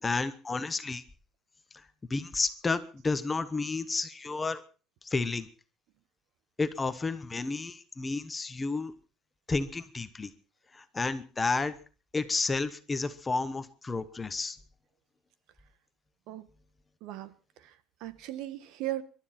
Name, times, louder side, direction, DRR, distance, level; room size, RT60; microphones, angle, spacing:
voice 1, 0.0-1.0 2.1-4.6 5.0-5.5 6.6-8.9 9.5-10.3 10.7-11.7 12.1-14.6, left 3 dB, 15° left, 1.0 m, -31 dB
voice 2, 17.0-17.3 17.6-19.0, right 15 dB, 65° right, 1.3 m, -37 dB
26.0 x 12.5 x 4.4 m
cardioid pair, 175°, 0 cm